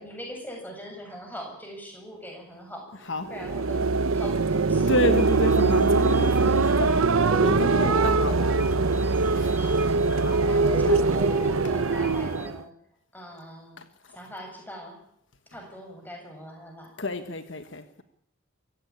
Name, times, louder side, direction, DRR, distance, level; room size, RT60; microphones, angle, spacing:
voice 1, 0.0-5.0 9.3-9.9 10.4-12.7 13.1-13.8 14.1-15.0 15.5-16.9, equal, 10° left, 1 dB, 7.3 m, -41 dB
sound 1, 3.2-12.6, right 3 dB, 85° right, 0.8 m, -22 dB
voice 2, 4.9-7.0 7.4-9.5 10.1-10.4 13.8-14.2 17.0-18.0, left 1 dB, 60° left, 9 dB, 1.5 m, -30 dB
sound 2, 5.2-12.5, right 1 dB, 10° right, 1.0 m, -36 dB
25.0 x 15.5 x 9.7 m, 0.70 s
head